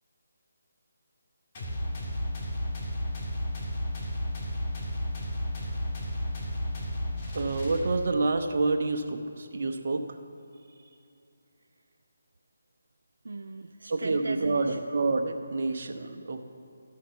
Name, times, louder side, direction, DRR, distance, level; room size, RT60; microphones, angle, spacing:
sound 1, 1.5-8.3, left 1 dB, 35° left, 2.0 m, -33 dB
voice 1, 7.3-10.1 13.9-16.4, right 3 dB, 50° right, 4 dB, 0.8 m, -28 dB
voice 2, 10.5-11.1 13.2-14.8 15.9-16.1, right 3 dB, 70° right, 6 dB, 0.4 m, -39 dB
14.0 x 6.3 x 5.9 m, 2.6 s
figure-of-eight pair, 155°, 0 cm